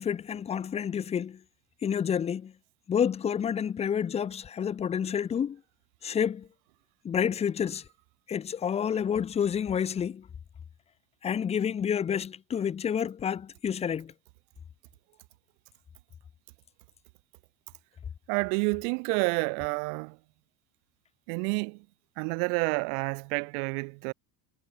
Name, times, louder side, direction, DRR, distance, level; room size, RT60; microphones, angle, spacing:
voice 1, 0.0-1.4 1.8-2.5 2.9-5.6 6.0-6.5 7.0-7.8 8.3-10.2 11.2-14.1, left 8 dB, 15° left, 0.3 m, -29 dB
voice 2, 18.3-20.2 21.3-21.9 22.2-24.1, right 40 dB or more, 70° right, 0.5 m, -29 dB
supercardioid pair, 110°, 48 cm